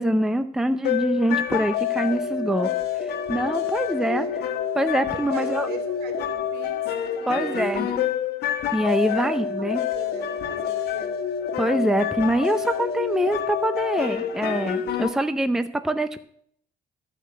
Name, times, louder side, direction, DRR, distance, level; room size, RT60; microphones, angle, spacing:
voice 1, 0.0-2.7 3.0-4.3 4.7-5.7 7.3-7.9 8.7-9.8 11.6-16.2, right 1 dB, 5° right, 10 dB, 0.5 m, -24 dB
sound 1, 0.8-15.1, left 9 dB, 75° left, 1.2 m, -27 dB
voice 2, 4.1-4.4 5.1-8.0 9.0-11.1, right 7 dB, 70° right, 5 dB, 3.0 m, -40 dB
13.5 x 5.1 x 7.6 m, 0.66 s
cardioid pair, 110°, 17 cm